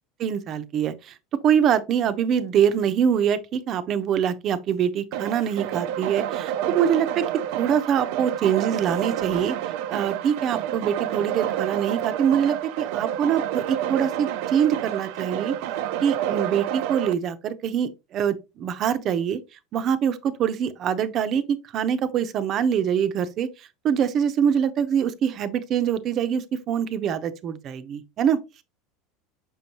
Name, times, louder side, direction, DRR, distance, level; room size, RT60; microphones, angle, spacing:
voice 1, 0.2-1.1 1.4-7.2 7.6-9.6 9.9-15.5 16.0-19.4 19.7-23.5 23.8-28.4, right 8 dB, 45° right, 0.8 m, -24 dB
sound 1, 5.1-17.1, right 11 dB, 70° right, 0.5 m, -29 dB
6.2 x 5.4 x 3.0 m
supercardioid pair, 115°, 0 cm